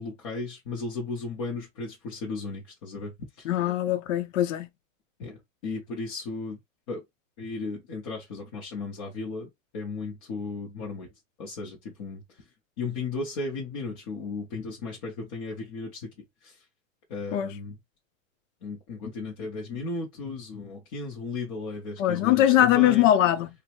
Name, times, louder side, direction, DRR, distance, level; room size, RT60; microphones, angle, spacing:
voice 1, 0.0-3.5 5.2-6.6 6.9-7.0 7.4-11.1 11.4-12.5 12.8-16.1 16.4-16.6 17.1-17.8 18.6-23.1, left 3 dB, 25° left, 0.5 m, -35 dB
voice 2, 3.5-4.7 17.3-17.5 22.0-23.5, left 12 dB, 70° left, 0.6 m, -21 dB
3.2 x 2.0 x 2.8 m
supercardioid pair, 170°, 39 cm